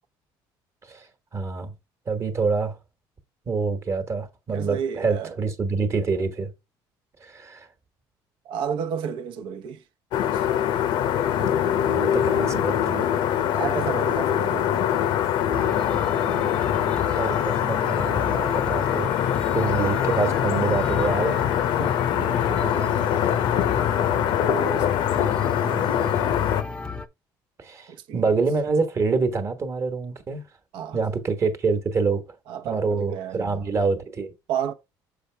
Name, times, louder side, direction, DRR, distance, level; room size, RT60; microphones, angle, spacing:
voice 1, 1.3-1.7 2.1-2.8 3.5-6.5 7.2-7.7 11.4-13.1 16.2-19.1 19.5-21.4 21.8-22.0 27.6-30.4 30.9-32.2 32.6-34.3, right 4 dB, 35° right, 1.2 m, -26 dB
voice 2, 4.5-5.3 8.5-9.8 10.3-10.5 13.5-15.1 22.1-23.3 23.7-25.1 25.6-25.9 28.1-28.3 30.7-31.0 32.5-33.6 34.5-34.7, right 8 dB, 75° right, 0.8 m, -32 dB
sound 1, 10.1-26.6, left 10 dB, 65° left, 0.6 m, -23 dB
sound 2, 15.5-27.1, left 4 dB, 10° left, 0.5 m, -34 dB
6.9 x 4.6 x 3.3 m
cardioid pair, 130°, 9 cm